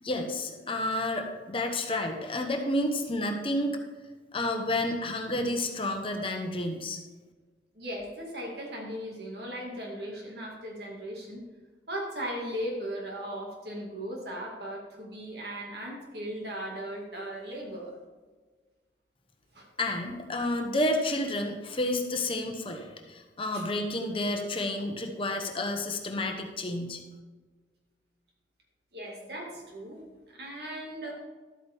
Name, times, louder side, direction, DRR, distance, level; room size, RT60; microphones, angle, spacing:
voice 1, 0.0-3.8 4.3-7.0 19.8-27.0, left 1 dB, 30° left, 4 dB, 1.1 m, -30 dB
voice 2, 7.8-11.4 11.9-17.9 19.5-19.7 23.5-23.7 28.9-30.0 30.3-31.1, equal, 60° right, -1 dB, 2.0 m, -37 dB
12.5 x 8.8 x 3.5 m, 1.4 s
head